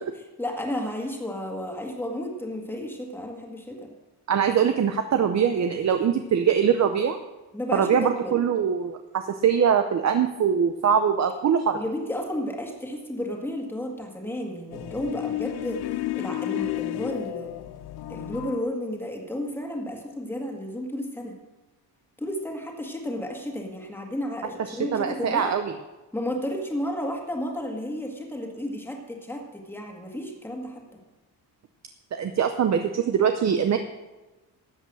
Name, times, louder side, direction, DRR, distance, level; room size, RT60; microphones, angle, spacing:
voice 1, 0.2-3.9 7.5-8.4 11.7-17.7 18.1-21.3 22.2-25.5 26.1-31.0, left 1 dB, 5° left, 1 dB, 1.9 m, -32 dB
voice 2, 4.3-7.2 7.7-11.8 24.7-25.7 32.1-33.8, right 7 dB, 40° right, 7 dB, 0.7 m, -23 dB
sound 1, 14.7-18.6, left 15 dB, 70° left, 0.5 m, -32 dB
13.0 x 8.0 x 6.1 m, 1.1 s
cardioid pair, 155°, 41 cm